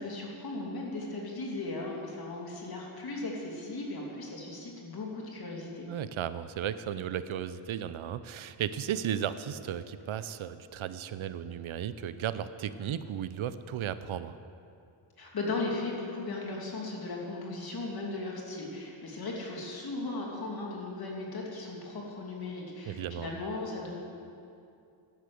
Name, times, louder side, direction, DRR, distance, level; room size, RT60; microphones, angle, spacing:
voice 1, 0.0-5.9 15.2-23.9, left 2 dB, 50° left, -2 dB, 2.6 m, -37 dB
voice 2, 5.9-14.4 22.9-23.4, right 9 dB, 75° right, 13 dB, 0.7 m, -35 dB
12.0 x 10.5 x 7.8 m, 2.5 s
wide cardioid pair, 175°, 48 cm